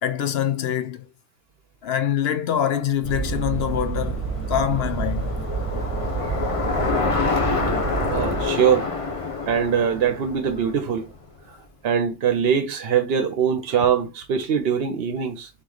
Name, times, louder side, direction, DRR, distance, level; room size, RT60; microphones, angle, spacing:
voice 1, 0.0-1.0 1.8-5.3, left 9 dB, 65° left, 0.8 m, -24 dB
Bicycle, 3.0-11.3, left 4 dB, 30° left, 0.8 m, -28 dB
sound 1, 3.0-8.5, right 6 dB, 10° right, 1.3 m, -28 dB
voice 2, 8.0-8.9 9.5-11.1 11.5-11.6 11.8-15.5, right 7 dB, 60° right, 0.8 m, -22 dB
4.1 x 3.1 x 3.8 m
omnidirectional pair, 1.2 m